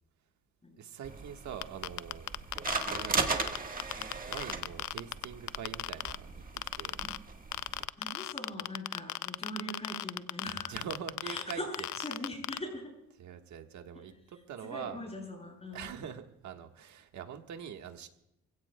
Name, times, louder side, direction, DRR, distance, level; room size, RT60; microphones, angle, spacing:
voice 1, 0.8-2.3 2.8-3.7 4.2-6.3 6.7-7.0 10.7-11.9 13.2-15.0 15.7-18.1, right 8 dB, 70° right, 5 dB, 1.5 m, -44 dB
sound 1, 1.0-7.9, right 4 dB, 30° right, 1.5 m, -37 dB
sound 2, 1.6-6.2 6.6-7.2 7.5-12.6, left 15 dB, 70° left, 0.5 m, -35 dB
voice 2, 8.0-10.8 11.2-12.9 14.6-15.9, left 1 dB, 20° left, -1 dB, 7.8 m, -41 dB
27.5 x 16.5 x 2.2 m, 0.84 s
cardioid pair, 90°, 30 cm